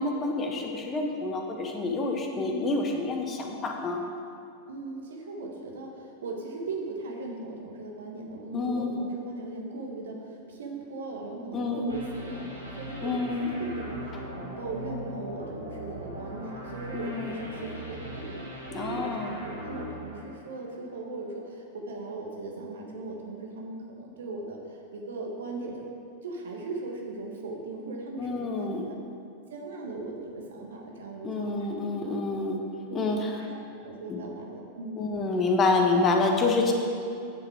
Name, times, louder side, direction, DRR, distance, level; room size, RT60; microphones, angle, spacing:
voice 1, 0.0-4.0 8.5-9.0 11.5-12.0 13.0-13.6 16.9-17.5 18.7-19.3 28.2-28.9 31.2-32.6 32.9-33.4 34.1-34.2 35.0-36.7, left 3 dB, 25° left, 2 dB, 1.2 m, -28 dB
voice 2, 2.3-2.8 4.7-18.4 18.7-19.1 19.4-25.9 26.2-29.0 29.5-31.7 32.0-32.1 32.9-33.0 33.4-35.0, right 2 dB, 65° right, 0 dB, 1.5 m, -38 dB
sound 1, 11.9-20.9, equal, 85° right, 1.8 m, -40 dB
9.7 x 7.2 x 4.8 m, 2.6 s
figure-of-eight pair, 90°, 0 cm